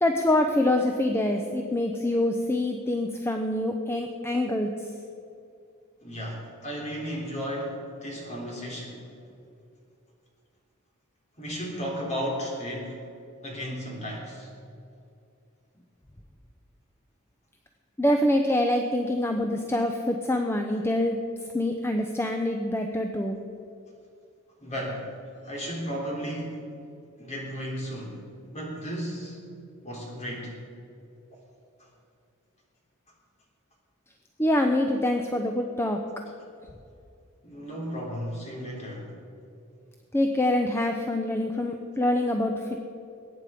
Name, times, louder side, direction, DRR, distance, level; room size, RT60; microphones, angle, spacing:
voice 1, 0.0-4.7 18.0-21.2 21.5-23.4 34.4-36.0 40.1-42.8, left 1 dB, 10° left, 4 dB, 0.7 m, -25 dB
voice 2, 6.0-9.0 11.4-13.0 13.4-14.5 24.6-25.1 25.4-26.6 27.2-28.2 28.5-29.4 29.8-30.5 37.4-39.2, equal, 35° left, -2 dB, 3.6 m, -34 dB
21.0 x 9.3 x 5.0 m, 2.6 s
head